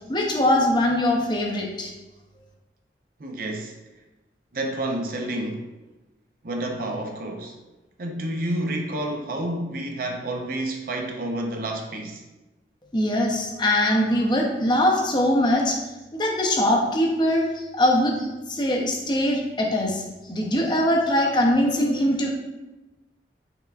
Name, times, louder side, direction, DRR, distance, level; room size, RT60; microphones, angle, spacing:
voice 1, 0.1-1.9 12.9-15.8 16.1-17.4 17.7-18.2 18.5-20.0 20.3-22.3, left 1 dB, 25° left, 0.6 m, -22 dB
voice 2, 3.2-3.8 4.5-5.7 6.4-7.5 8.0-12.2, right 1 dB, 50° right, 0.5 m, -29 dB
5.6 x 3.4 x 2.4 m
head